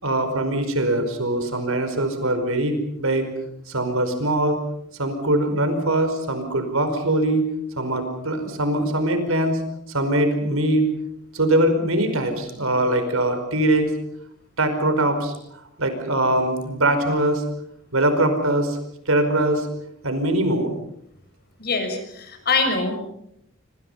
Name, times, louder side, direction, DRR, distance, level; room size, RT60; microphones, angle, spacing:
voice 1, 0.0-3.2 3.7-4.6 5.0-7.5 7.8-9.6 9.9-10.9 11.3-13.9 14.6-15.3 15.8-17.4 17.9-18.8 19.0-19.7 20.0-20.7, right 1 dB, 70° right, 8 dB, 5.1 m, -22 dB
voice 2, 21.6-23.0, left 3 dB, 45° left, 7 dB, 6.1 m, -23 dB
27.0 x 26.5 x 5.7 m, 0.76 s
head